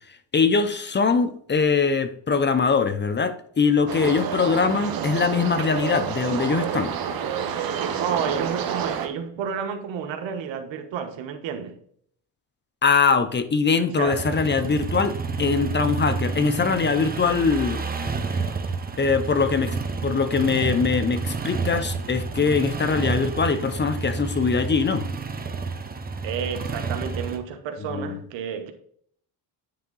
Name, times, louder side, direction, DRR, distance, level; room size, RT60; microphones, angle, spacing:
voice 1, 0.3-6.9 12.8-17.8 19.0-19.8 20.0-25.1 27.9-28.2, left 5 dB, 25° left, 0.6 m, -22 dB
sound 1, 3.9-9.1, right 8 dB, 50° right, 1.0 m, -28 dB
voice 2, 7.9-11.8 14.0-14.2 26.2-28.7, right 7 dB, 85° right, 1.3 m, -30 dB
sound 2, 14.1-27.4, right 4 dB, 20° right, 0.8 m, -30 dB
9.7 x 3.5 x 3.9 m
cardioid pair, 110°, 44 cm